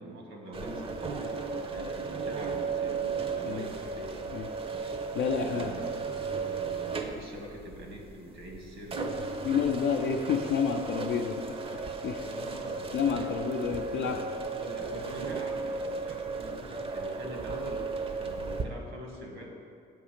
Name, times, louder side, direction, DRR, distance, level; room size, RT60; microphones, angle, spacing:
voice 1, 0.0-4.2 5.4-9.0 12.2-13.5 13.9-14.3 14.6-19.5, equal, 80° right, 0 dB, 1.2 m, -44 dB
sound 1, 0.5-18.7, right 4 dB, 30° right, 0.5 m, -35 dB
voice 2, 5.1-5.7 9.4-12.3 12.9-14.2, left 6 dB, 70° left, 2 dB, 0.4 m, -30 dB
7.3 x 2.8 x 5.8 m, 2.4 s
cardioid pair, 90°, 20 cm